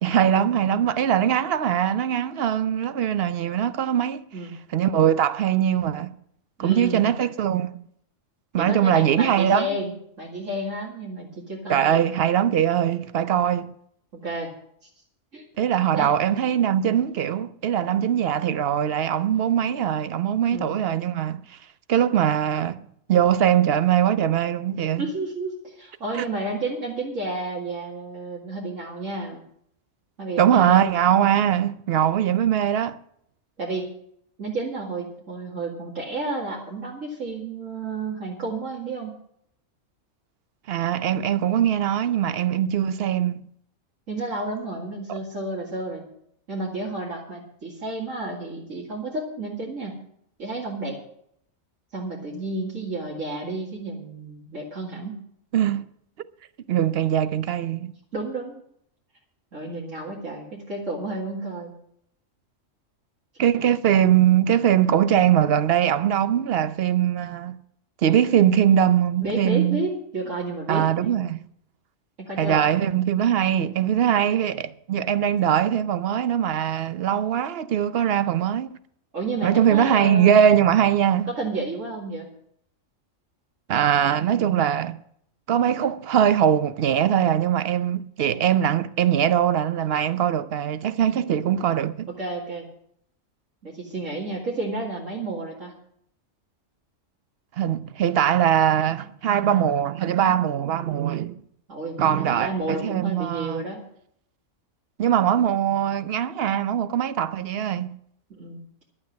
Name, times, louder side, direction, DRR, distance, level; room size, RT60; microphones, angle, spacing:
voice 1, 0.0-4.2 4.7-6.1 6.6-7.8 8.5-9.7 11.7-13.7 15.6-21.4 21.9-22.8 23.1-25.1 26.1-26.3 30.4-33.0 40.7-43.4 45.1-45.2 55.5-55.9 56.7-57.9 63.4-67.6 68.0-69.8 70.7-71.4 72.4-78.8 79.4-81.3 83.7-85.0 85.5-92.1 97.6-101.4 102.0-103.7 105.0-108.0, right 9 dB, 60° right, 0.8 m, -21 dB
voice 2, 6.6-7.1 8.6-9.9 10.2-12.0 14.2-14.5 14.8-14.9 15.3-15.5 15.9-16.2 20.5-20.8 25.0-29.4 30.2-30.9 33.6-33.9 34.4-39.1 44.1-46.0 46.5-50.0 50.4-51.0 51.9-55.2 58.1-58.6 59.5-61.7 69.2-71.2 72.2-72.7 79.1-80.3 81.3-82.3 92.1-92.7 93.6-95.7 101.7-103.9 108.3-108.6, right 2 dB, 75° right, 2.5 m, -31 dB
11.5 x 8.7 x 7.4 m
omnidirectional pair, 1.3 m